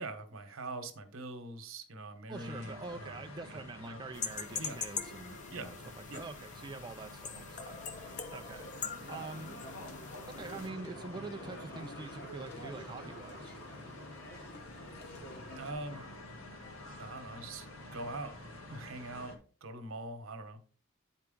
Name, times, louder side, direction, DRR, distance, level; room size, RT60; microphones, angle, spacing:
voice 1, 0.0-3.2 3.5-4.0 4.5-4.8 5.5-5.7 6.1-6.3 15.5-16.0 17.0-17.7 17.9-18.3 18.7-20.6, right 2 dB, 70° right, 1.0 m, -43 dB
sound 1, 2.3-19.4, left 2 dB, 75° left, 1.8 m, -49 dB
voice 2, 2.3-5.8 6.1-7.8 8.3-8.7 9.1-9.6 10.3-13.5, right 3 dB, 20° right, 0.3 m, -45 dB
sound 2, 4.1-10.7, left 6 dB, 35° left, 0.6 m, -43 dB
sound 3, 8.0-15.7, equal, 50° left, 1.4 m, -49 dB
9.4 x 4.5 x 3.7 m
head